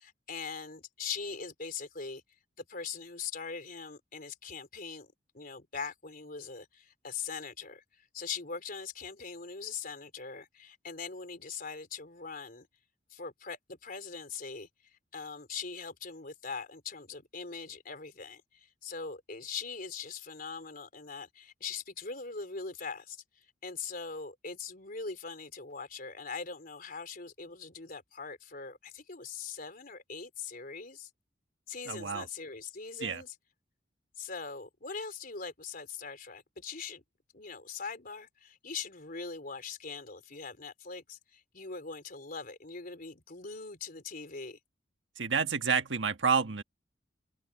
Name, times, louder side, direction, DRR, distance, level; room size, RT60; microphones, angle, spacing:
voice 1, 0.0-2.2 2.6-12.7 13.1-31.1 31.7-33.4 34.2-37.0 37.3-44.6, left 5 dB, 50° left, 3.9 m, -41 dB
voice 2, 31.9-32.3 33.0-33.2 45.2-46.6, right 5 dB, 80° right, 1.4 m, -29 dB
open air
head